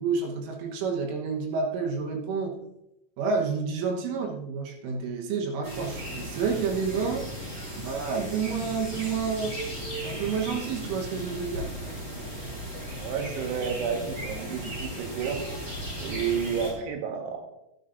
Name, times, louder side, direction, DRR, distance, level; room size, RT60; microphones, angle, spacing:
voice 1, 0.0-2.6 3.2-7.3 7.8-9.5 10.0-11.7, right 5 dB, 85° right, 1 dB, 3.8 m, -29 dB
sound 1, 5.6-16.7, equal, 30° right, 5.2 m, -36 dB
voice 2, 13.0-15.4 16.0-17.5, right 7 dB, 70° right, 2 dB, 3.4 m, -31 dB
14.0 x 12.5 x 2.6 m, 0.86 s
omnidirectional pair, 5.5 m